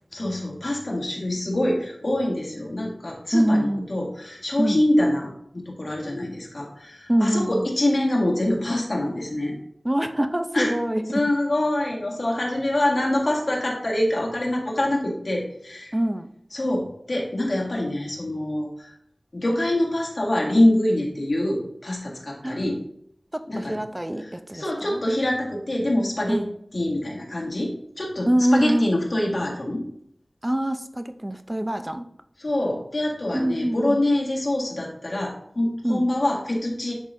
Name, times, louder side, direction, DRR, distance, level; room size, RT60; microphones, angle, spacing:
voice 1, 0.1-9.6 10.5-10.7 11.1-15.9 16.5-18.9 19.3-22.8 23.5-23.8 24.2-26.4 26.7-29.8 32.4-36.9, left 1 dB, 65° left, -2 dB, 1.8 m, -25 dB
voice 2, 3.3-3.9 4.6-4.8 7.1-7.7 9.8-11.2 15.9-16.3 22.4-22.8 23.3-25.0 26.3-26.5 28.3-28.9 30.4-32.1 33.3-34.0 35.8-36.1, right 1 dB, 20° right, 9 dB, 0.5 m, -24 dB
10.5 x 4.0 x 2.7 m, 0.70 s
wide cardioid pair, 60°, 0 cm